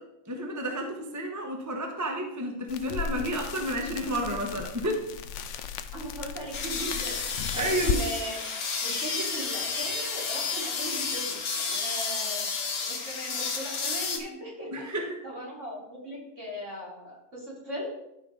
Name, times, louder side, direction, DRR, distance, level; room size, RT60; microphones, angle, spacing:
voice 1, 0.3-5.0 7.5-8.0 14.7-15.1, right 1 dB, 15° right, 2 dB, 0.9 m, -31 dB
sound 1, 2.7-8.0, left 8 dB, 65° left, 0.8 m, -35 dB
voice 2, 5.9-7.2 7.5-8.4 8.8-12.4 12.9-14.7 15.2-17.9, right 1 dB, 55° right, -5 dB, 3.8 m, -38 dB
sound 2, 6.5-14.2, left 5 dB, 85° left, 1.7 m, -31 dB
12.5 x 5.2 x 3.8 m, 0.83 s
omnidirectional pair, 1.5 m